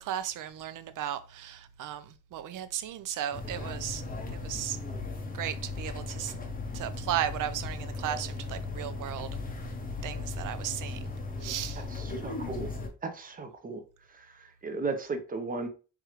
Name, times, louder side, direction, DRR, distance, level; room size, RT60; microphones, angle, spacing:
voice 1, 0.0-4.0 4.3-4.8 5.3-6.3 6.7-9.3 10.0-11.0 11.4-11.8, right 11 dB, 75° right, 0.5 m, -35 dB
sound 1, 3.3-12.9, left 3 dB, 30° left, 0.6 m, -37 dB
voice 2, 11.9-12.7 13.0-13.8 14.1-15.7, right 3 dB, 30° right, 0.5 m, -36 dB
4.6 x 2.4 x 2.9 m
wide cardioid pair, 170°, 31 cm